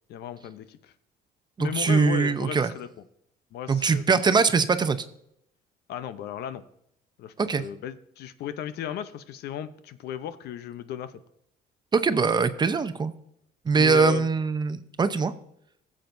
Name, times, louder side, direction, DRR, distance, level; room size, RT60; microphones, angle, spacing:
voice 1, 0.1-0.9 1.6-2.9 3.5-4.2 5.9-6.6 7.2-11.2 13.7-14.3, left 10 dB, 75° left, 12 dB, 0.7 m, -35 dB
voice 2, 1.6-2.7 3.7-5.0 7.4-7.6 11.9-13.1 13.7-15.3, right 4 dB, 25° right, 11 dB, 0.7 m, -22 dB
17.0 x 7.5 x 2.6 m, 0.73 s
cardioid pair, 110°, 17 cm